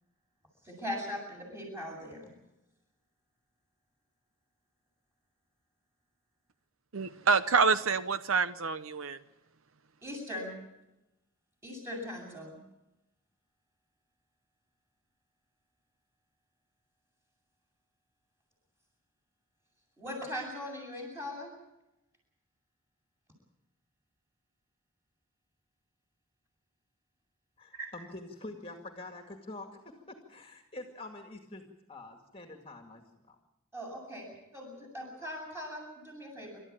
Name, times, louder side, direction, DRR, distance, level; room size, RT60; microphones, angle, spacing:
voice 1, 0.6-2.2 10.0-10.5 11.6-12.6 20.0-21.5 27.7-27.9 33.7-36.6, left 1 dB, 10° right, 7.9 m, -40 dB
voice 2, 6.9-9.2, right 5 dB, 80° right, 0.8 m, -27 dB
voice 3, 27.6-29.7 29.9-31.6 31.9-33.4, left 2 dB, 25° left, 2.2 m, -46 dB
28.0 x 13.5 x 8.8 m
head